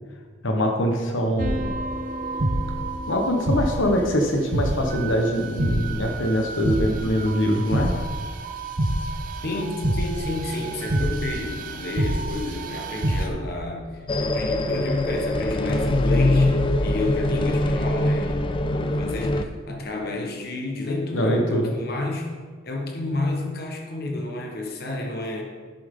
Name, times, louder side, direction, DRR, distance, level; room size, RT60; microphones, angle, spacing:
voice 1, 0.4-1.8 3.1-7.9 21.1-21.7, equal, 80° left, 2 dB, 1.1 m, -23 dB
sound 1, 1.4-13.3, right 1 dB, 45° right, 0.7 m, -27 dB
voice 2, 9.4-16.6 16.8-22.3 22.6-25.4, left 2 dB, 50° left, 2 dB, 1.2 m, -30 dB
sound 2, 14.1-19.4, left 1 dB, 25° left, 0.4 m, -23 dB
12.0 x 7.3 x 3.7 m, 1.5 s
head